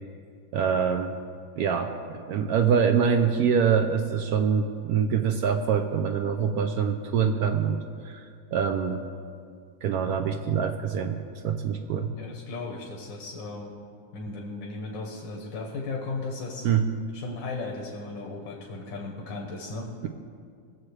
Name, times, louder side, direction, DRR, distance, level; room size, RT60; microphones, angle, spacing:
voice 1, 0.5-1.1 1.6-9.0 9.8-11.2 11.4-12.1 16.6-16.9, right 7 dB, 70° right, 6 dB, 0.9 m, -25 dB
voice 2, 12.0-13.7 14.1-16.7 17.1-19.9, left 3 dB, 85° left, 0 dB, 1.8 m, -36 dB
19.5 x 7.3 x 3.2 m, 2.2 s
omnidirectional pair, 2.0 m